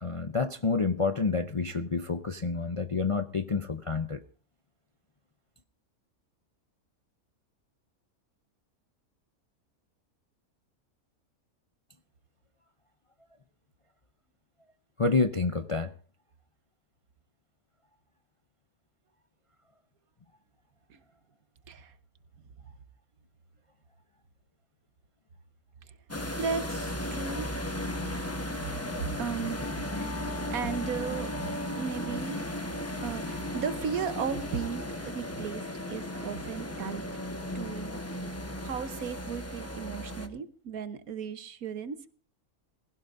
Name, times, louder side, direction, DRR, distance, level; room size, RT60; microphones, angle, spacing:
voice 1, 0.0-4.2 15.0-15.9, left 4 dB, 40° left, 0.4 m, -28 dB
sound 1, 26.1-40.3, left 1 dB, 10° left, 1.0 m, -36 dB
voice 2, 26.4-27.5 29.2-29.7 30.0-30.1 30.5-31.3 31.7-32.5 33.0-37.1 37.5-38.0 38.6-42.1, right 6 dB, 75° right, 1.5 m, -35 dB
Wind instrument woodwind instrument, 29.3-34.8, left 1 dB, 75° left, 1.5 m, -43 dB
19.5 x 16.5 x 2.6 m
omnidirectional pair, 1.5 m